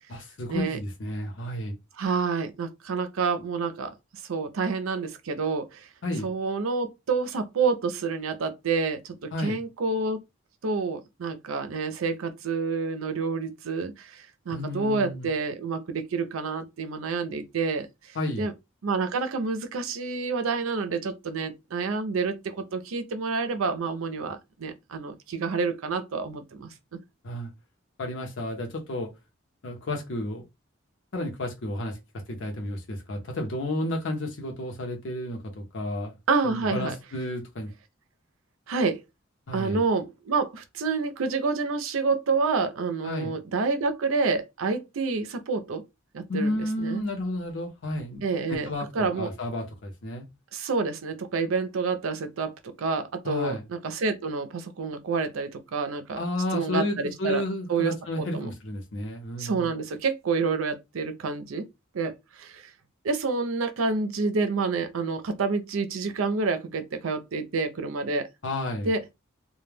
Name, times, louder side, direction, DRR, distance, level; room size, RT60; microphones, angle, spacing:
voice 1, 0.1-1.7 6.0-6.3 9.3-9.6 14.5-15.3 18.1-18.4 27.2-27.5 28.0-29.1 29.6-30.4 31.1-32.0 32.3-36.1 36.4-37.7 39.5-39.8 43.0-43.4 46.3-48.2 48.5-50.3 53.2-53.6 56.2-59.7 68.4-68.9, left 1 dB, 60° left, 0.7 m, -31 dB
voice 2, 2.0-3.9 4.3-5.9 6.2-10.2 10.6-17.9 18.4-18.5 18.8-26.7 36.3-37.0 38.7-39.0 39.5-45.8 46.1-47.0 48.2-48.7 48.9-49.3 50.5-56.2 56.5-57.4 57.7-58.5 59.4-61.7 61.9-62.6 63.0-68.3 68.8-69.0, right 4 dB, 85° right, 0.5 m, -28 dB
2.2 x 2.1 x 3.2 m
head